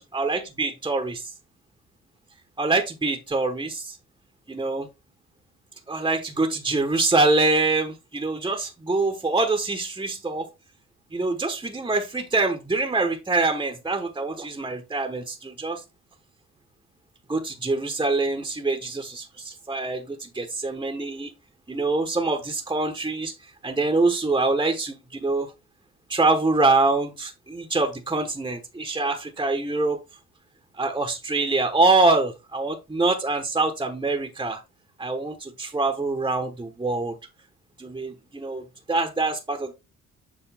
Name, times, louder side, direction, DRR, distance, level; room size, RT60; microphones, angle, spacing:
voice 1, 0.0-1.2 2.6-4.0 4.5-4.9 5.9-10.5 11.1-15.8 17.3-21.3 21.7-25.5 26.1-30.0 30.7-34.6 35.0-37.1 37.8-39.7, right 3 dB, 15° right, 1.1 m, -25 dB
7.4 x 4.6 x 3.5 m
cardioid pair, 90°, 30 cm